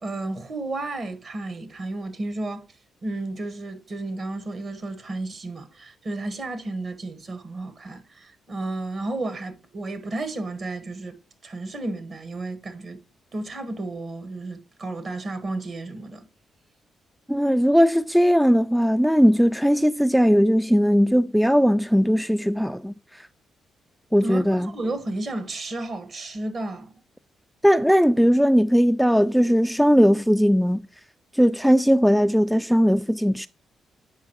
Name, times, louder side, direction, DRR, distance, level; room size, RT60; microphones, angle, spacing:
voice 1, 0.0-2.6 3.0-11.2 11.4-13.0 13.3-16.3 24.2-26.9, right 2 dB, 50° right, 1.4 m, -32 dB
voice 2, 17.3-22.9 24.1-24.7 27.6-30.8 31.4-33.5, equal, ahead, 0.3 m, -19 dB
8.4 x 5.5 x 2.9 m
hypercardioid pair, 45°, 0 cm